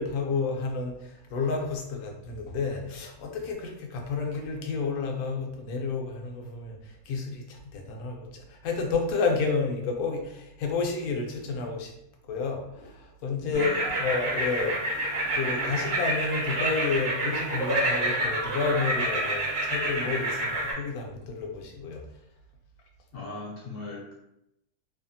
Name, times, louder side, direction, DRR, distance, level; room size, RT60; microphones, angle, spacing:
voice 1, 0.0-11.9 12.3-13.7 14.0-14.8 15.1-22.0, left 4 dB, 80° left, 1 dB, 1.1 m, -30 dB
voice 2, 13.5-14.0 23.1-24.1, left 2 dB, 55° left, -4 dB, 0.6 m, -38 dB
sound 1, 13.5-20.7, right 1 dB, 35° right, 0.7 m, -28 dB
2.8 x 2.4 x 2.6 m, 0.82 s
omnidirectional pair, 1.6 m